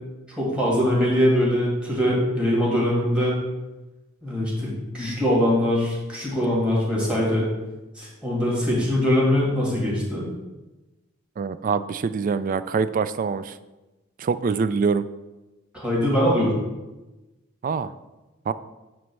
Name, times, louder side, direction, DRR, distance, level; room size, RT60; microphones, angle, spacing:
voice 1, 0.4-3.3 4.2-7.5 8.0-10.2 15.7-16.5, equal, 5° right, -5 dB, 2.4 m, -22 dB
voice 2, 11.4-13.6 14.2-15.0 17.6-17.9 18.5-18.6, right 5 dB, 40° right, 14 dB, 0.3 m, -24 dB
9.2 x 3.1 x 6.1 m, 1.1 s
head